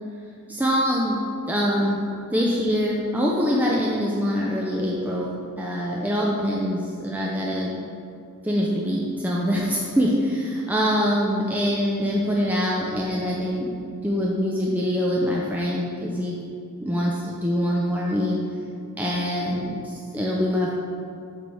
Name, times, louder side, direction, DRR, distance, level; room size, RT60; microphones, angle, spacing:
voice 1, 0.5-1.2 1.5-2.0 2.3-5.3 5.6-7.8 8.4-13.7 14.0-16.4 16.8-18.4 19.0-20.7, equal, 10° right, -4 dB, 0.5 m, -24 dB
7.5 x 3.3 x 5.4 m, 2.4 s
head